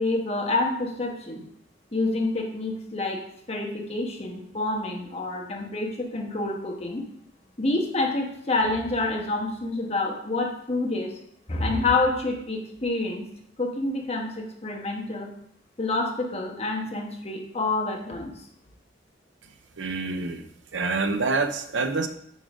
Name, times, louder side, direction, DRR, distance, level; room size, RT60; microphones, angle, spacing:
voice 1, 0.0-1.4 1.9-3.2 3.5-7.0 7.6-11.1 11.5-13.3 13.6-15.3 15.8-18.3, left 2 dB, 35° left, 1 dB, 1.2 m, -27 dB
voice 2, 19.8-20.5 20.7-22.1, right 3 dB, 85° right, 8 dB, 0.7 m, -26 dB
9.2 x 3.9 x 5.0 m, 0.71 s
head